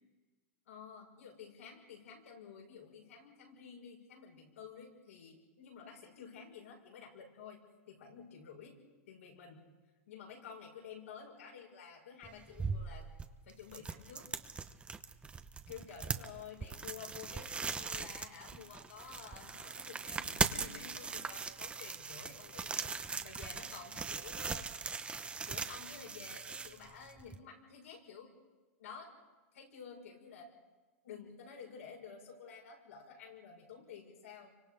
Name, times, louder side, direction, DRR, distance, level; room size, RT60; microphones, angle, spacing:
voice 1, 0.7-7.6 7.9-8.8 9.1-9.7 10.1-13.1 13.4-14.3 15.7-22.9 23.2-24.7 25.5-28.3 28.8-29.1 29.5-30.5 31.0-34.5, left 6 dB, 80° left, 0 dB, 6.5 m, -51 dB
sound 1, 12.2-27.4, right 5 dB, 15° right, 1.0 m, -40 dB
30.0 x 25.0 x 5.2 m, 1.2 s
hypercardioid pair, 120°, 7 cm